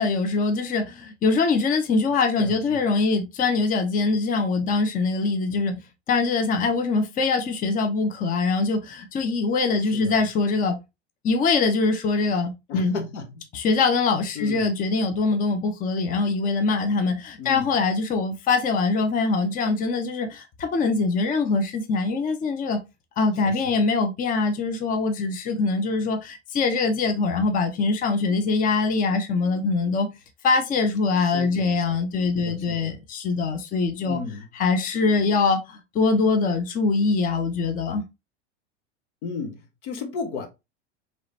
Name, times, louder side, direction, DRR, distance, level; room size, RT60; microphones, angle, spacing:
voice 1, 0.0-5.8 6.1-10.8 11.2-12.9 13.5-22.8 23.2-30.1 30.4-34.2 34.6-38.0, left 4 dB, 25° left, 0.6 m, -23 dB
voice 2, 2.4-2.9 9.9-10.2 12.7-13.4 14.3-14.7 17.4-17.7 23.4-23.8 31.2-32.0 32.3-33.0 34.0-34.5 39.2-40.5, left 4 dB, 70° left, 1.3 m, -34 dB
4.7 x 3.1 x 2.7 m
hypercardioid pair, 100°, 35 cm